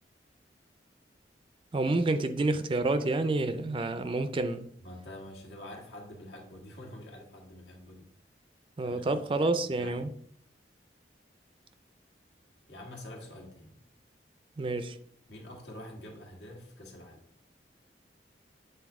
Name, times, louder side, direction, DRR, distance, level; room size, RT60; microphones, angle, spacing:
voice 1, 1.7-4.7 8.8-10.1 14.6-15.0, right 2 dB, 30° right, 0.4 m, -29 dB
voice 2, 4.8-8.1 8.8-10.1 12.7-13.8 15.3-17.2, left 1 dB, 75° left, 1.6 m, -47 dB
7.9 x 4.0 x 3.6 m
head